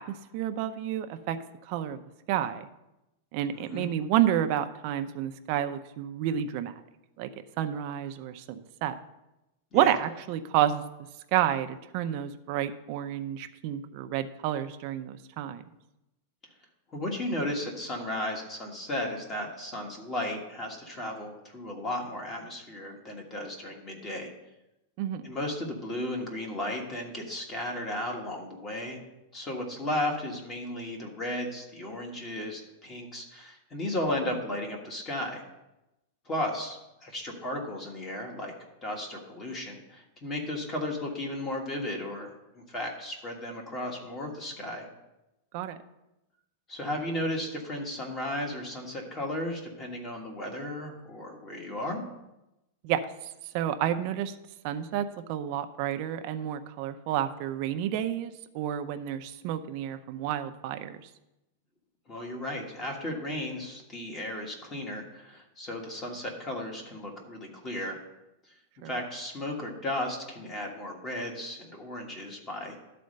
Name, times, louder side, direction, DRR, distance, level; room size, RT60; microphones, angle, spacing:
voice 1, 0.0-1.4 1.7-2.0 2.3-2.7 3.3-6.7 7.2-7.3 7.6-9.0 9.7-10.8 11.3-15.6 25.0-25.3 45.5-45.8 52.8-53.1 53.5-54.3 54.6-61.0 68.8-68.9, right 11 dB, 40° right, 9 dB, 0.6 m, -30 dB
voice 2, 3.5-3.9 9.7-9.9 16.9-24.3 25.2-29.0 29.3-35.4 36.2-38.5 38.8-44.9 46.7-52.0 62.1-68.0 68.8-72.8, left 1 dB, 20° left, 1 dB, 1.5 m, -35 dB
11.5 x 4.2 x 6.5 m, 0.93 s
supercardioid pair, 165°, 0 cm